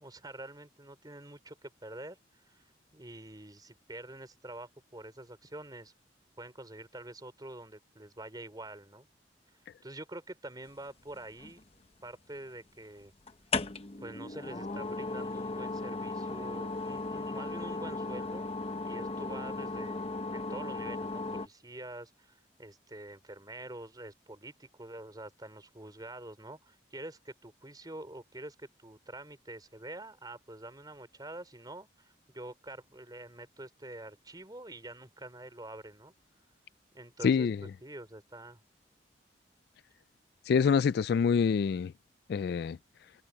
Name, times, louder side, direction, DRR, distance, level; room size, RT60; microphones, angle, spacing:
voice 1, 0.0-2.6 2.9-5.9 6.4-9.1 9.8-11.6 12.0-13.1 14.0-18.5 18.8-20.0 20.3-36.1 36.9-38.6, right 1 dB, 20° right, 4.1 m, -46 dB
sound 1, 11.1-11.9 13.3-21.5, left 3 dB, 35° left, 0.9 m, -36 dB
voice 2, 37.2-37.6 40.5-41.9 42.3-42.8, left 6 dB, 60° left, 0.3 m, -26 dB
head